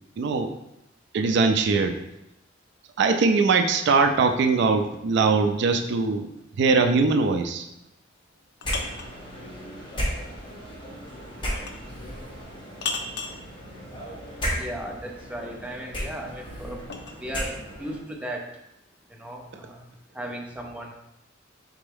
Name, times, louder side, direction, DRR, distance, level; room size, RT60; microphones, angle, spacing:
voice 1, 0.2-0.5 1.1-2.0 3.0-6.3 6.6-7.7, right 4 dB, 60° right, 6 dB, 0.3 m, -21 dB
sound 1, 8.2-9.2 11.6-11.9 12.8-13.4 15.7-17.2, left 4 dB, 60° left, 0.5 m, -34 dB
sound 2, 8.6-18.0, equal, 25° left, 1.1 m, -35 dB
voice 2, 14.5-16.8 17.2-18.5 19.1-19.9 20.1-20.9, right 1 dB, 5° right, 0 dB, 0.5 m, -36 dB
4.4 x 3.4 x 3.4 m, 0.86 s
head